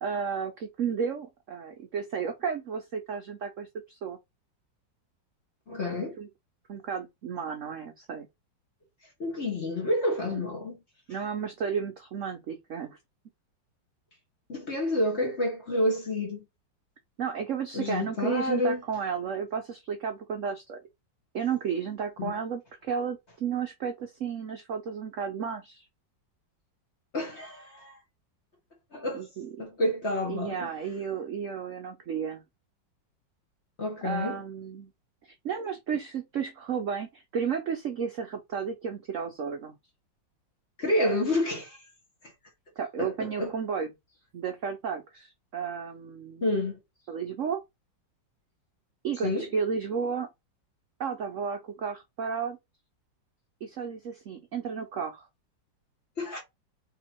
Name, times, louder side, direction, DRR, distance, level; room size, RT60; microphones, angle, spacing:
voice 1, 0.0-4.2 6.2-6.3 6.7-8.3 10.3-10.4 11.1-13.0 17.2-20.8 21.3-25.8 29.1-29.5 30.3-32.4 34.0-34.9 35.2-39.8 42.8-43.9 44.3-46.5 47.1-47.6 49.0-50.3 51.0-52.6 53.6-55.3, right 6 dB, 65° right, 0.8 m, -33 dB
voice 2, 5.7-6.2 9.2-10.8 14.5-16.4 17.7-18.8 22.2-22.3 27.1-28.0 28.9-29.2 29.6-30.7 33.8-34.4 40.8-41.8 43.0-43.6 46.4-46.8 49.2-49.5 56.2-56.4, left 1 dB, 40° left, 1.2 m, -29 dB
3.7 x 2.9 x 4.3 m
omnidirectional pair, 2.1 m